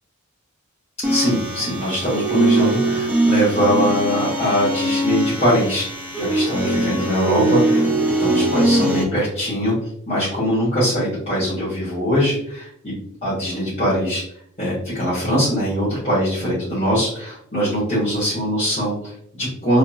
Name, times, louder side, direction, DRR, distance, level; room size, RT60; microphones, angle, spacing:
sound 1, 1.0-9.0, right 1 dB, 10° right, 0.3 m, -21 dB
voice 1, 1.1-5.9 6.2-7.9 8.2-9.7 10.1-12.9 13.2-14.2 14.6-19.8, equal, 30° left, -12 dB, 1.1 m, -22 dB
2.8 x 2.3 x 2.5 m, 0.69 s
head